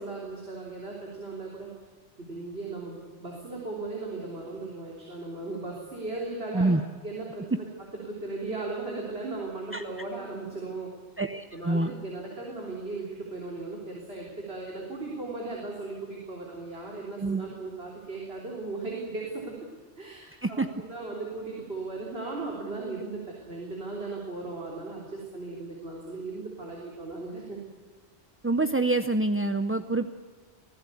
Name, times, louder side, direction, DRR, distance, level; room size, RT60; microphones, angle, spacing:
voice 1, 0.0-1.7 2.2-6.7 7.0-7.7 8.0-10.9 11.5-19.6 20.0-27.6, right 3 dB, 60° right, -3 dB, 3.9 m, -37 dB
voice 2, 11.2-11.9 17.2-17.5 20.4-20.7 28.4-30.1, right 2 dB, 15° right, 8 dB, 0.5 m, -26 dB
25.0 x 15.5 x 8.4 m, 1.5 s
omnidirectional pair, 1.2 m